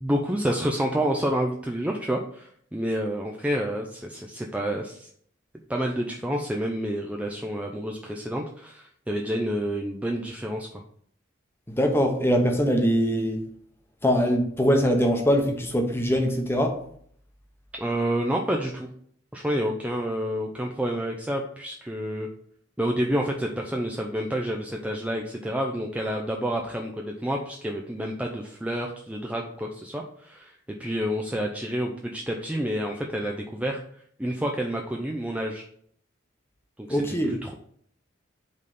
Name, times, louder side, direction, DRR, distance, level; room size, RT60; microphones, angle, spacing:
voice 1, 0.0-5.1 5.7-10.8 17.8-18.9 19.3-22.3 22.8-33.8 34.2-35.6 36.8-37.5, equal, 5° right, 1 dB, 0.5 m, -29 dB
voice 2, 11.7-13.4 14.0-16.8 36.9-37.4, equal, 10° left, 3 dB, 0.9 m, -22 dB
5.3 x 4.0 x 5.3 m, 0.63 s
head